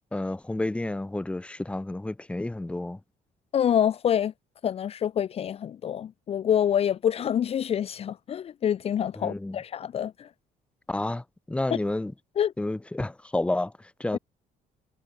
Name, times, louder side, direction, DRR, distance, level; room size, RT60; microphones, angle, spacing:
voice 1, 0.1-3.0 9.2-9.6 10.9-12.1 12.6-13.7 14.0-14.2, left 2 dB, 5° left, 2.1 m, -30 dB
voice 2, 3.5-4.3 4.6-10.3 12.4-12.5 14.1-14.2, left 9 dB, 40° left, 1.0 m, -26 dB
cardioid pair, 160°, 15 cm